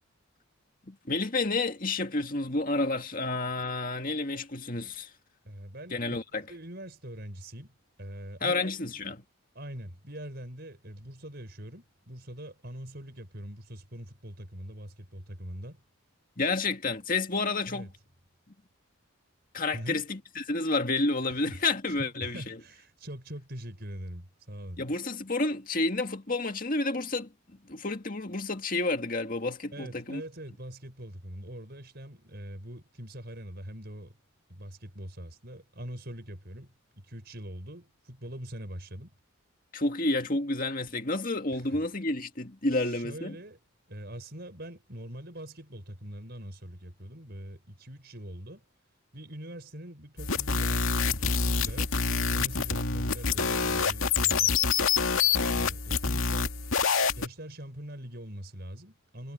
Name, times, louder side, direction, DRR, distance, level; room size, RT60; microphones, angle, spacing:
voice 1, 0.9-5.1 5.9-6.5 8.4-9.2 16.4-17.9 19.5-22.6 24.8-27.3 27.6-30.2 39.7-43.4, left 2 dB, 40° left, 2.1 m, -30 dB
voice 2, 5.4-7.7 8.0-8.7 9.5-15.8 17.7-17.9 19.7-20.0 21.5-21.6 22.0-24.8 29.7-34.1 34.5-39.1 41.5-41.6 42.7-43.6 43.9-48.6 49.1-54.7 55.5-56.5 57.2-59.3, equal, 50° right, 5.8 m, -43 dB
sound 1, 50.2-57.3, left 5 dB, 75° left, 2.2 m, -26 dB
head